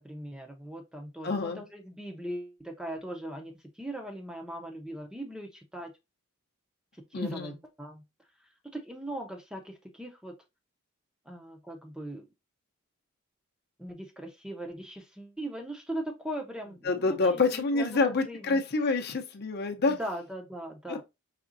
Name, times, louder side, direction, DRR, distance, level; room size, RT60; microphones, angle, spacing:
voice 1, 0.0-5.9 7.0-8.0 8.7-10.3 11.3-12.3 13.8-18.6 19.9-21.0, right 1 dB, 5° right, 0.5 m, -40 dB
voice 2, 1.2-1.6 7.1-7.5 16.8-20.0 20.9-21.0, left 3 dB, 50° left, 0.6 m, -27 dB
4.9 x 3.4 x 2.6 m
head